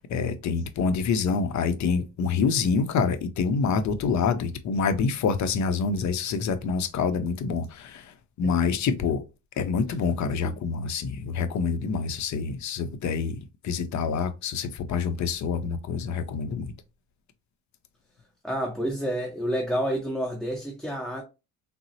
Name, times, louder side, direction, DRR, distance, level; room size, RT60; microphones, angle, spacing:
voice 1, 0.0-9.2 9.6-13.4 13.6-16.7, left 5 dB, 45° left, 0.6 m, -26 dB
voice 2, 18.4-21.2, equal, ahead, 0.8 m, -29 dB
3.7 x 2.0 x 2.7 m
supercardioid pair, 75°, 40 cm